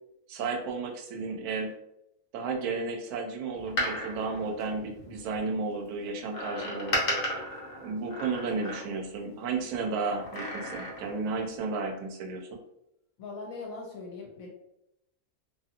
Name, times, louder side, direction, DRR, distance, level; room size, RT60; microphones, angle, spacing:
voice 1, 0.3-1.7 2.3-7.2 7.8-12.5, right 4 dB, 90° right, 3 dB, 1.1 m, -33 dB
Door, 3.6-5.4 6.3-9.2 10.1-11.3 11.6-11.7, equal, 50° left, 0.7 m, -34 dB
voice 2, 13.2-14.5, left 3 dB, 75° left, -1 dB, 1.0 m, -40 dB
2.7 x 2.7 x 2.5 m, 0.81 s
omnidirectional pair, 1.6 m